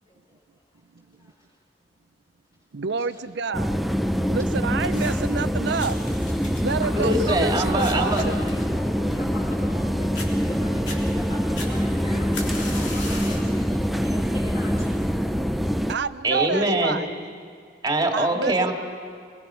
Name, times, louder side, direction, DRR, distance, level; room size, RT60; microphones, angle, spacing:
voice 1, 0.1-0.4 1.2-1.5 3.0-3.2 3.5-3.7 4.2-4.6 5.5-5.6 6.8-10.1 10.5-15.0, left 1 dB, 35° left, -8 dB, 4.4 m, -40 dB
voice 2, 2.7-3.8 4.3-6.0 6.6-8.4 15.9-17.1 18.1-18.7, right 5 dB, 65° right, 14 dB, 0.6 m, -28 dB
sound 1, 3.5-15.9, equal, ahead, 0.6 m, -25 dB
sound 2, 4.8-5.4 5.8-9.8 10.1-10.3 10.7-11.0 11.6-13.5 14.0-14.3 15.1-15.2, left 3 dB, 70° left, 3.6 m, -38 dB
voice 3, 7.0-8.2 16.2-17.0 17.8-18.7, right 1 dB, 20° right, 2 dB, 2.3 m, -23 dB
26.0 x 21.5 x 5.7 m, 2.1 s
head